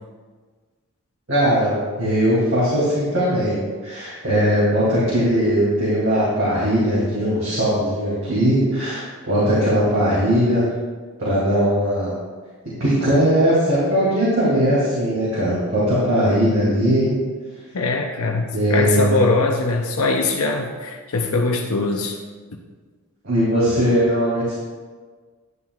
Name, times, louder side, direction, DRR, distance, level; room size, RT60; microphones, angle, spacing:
voice 1, 1.3-3.6 3.8-10.6 11.2-12.1 12.6-17.1 18.5-19.2 23.2-24.5, equal, 60° right, -9 dB, 2.7 m, -19 dB
voice 2, 17.7-22.2 22.5-22.6, left 3 dB, 75° left, 1 dB, 0.7 m, -22 dB
11.0 x 8.7 x 2.4 m, 1.5 s
head